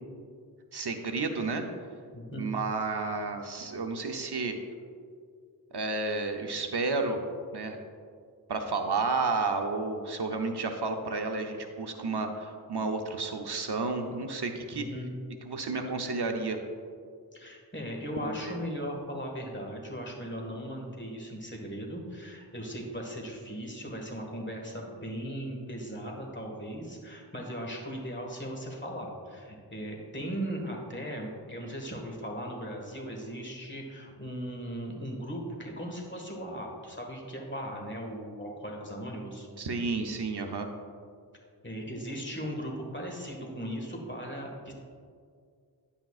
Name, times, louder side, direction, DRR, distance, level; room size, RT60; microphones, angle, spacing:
voice 1, 0.7-1.6 2.3-4.6 5.7-7.2 7.5-7.8 8.5-14.9 15.5-16.6 18.2-18.6 39.6-40.7, right 3 dB, 75° right, 4 dB, 0.7 m, -31 dB
voice 2, 2.1-2.5 14.7-15.1 17.3-39.5 41.6-44.7, equal, 30° left, 0 dB, 1.6 m, -38 dB
10.0 x 8.6 x 2.4 m, 2.2 s
wide cardioid pair, 45°, 40 cm